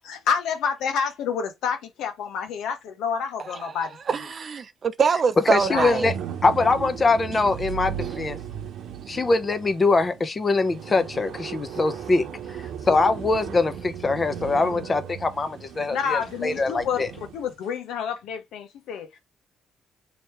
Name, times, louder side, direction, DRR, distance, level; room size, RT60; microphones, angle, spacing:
voice 1, 0.1-4.0 5.6-5.9 12.9-13.0 15.9-19.2, left 7 dB, 85° left, 1.1 m, -28 dB
voice 2, 3.6-6.1 7.3-7.4, right 5 dB, 45° right, 0.6 m, -24 dB
voice 3, 5.5-6.1 6.4-7.9 8.2-8.3 9.1-12.2 12.8-17.1, left 3 dB, 30° left, 0.8 m, -23 dB
sound 1, 5.5-17.5, right 9 dB, 80° right, 0.9 m, -36 dB
3.1 x 3.1 x 4.5 m
cardioid pair, 90°, 0 cm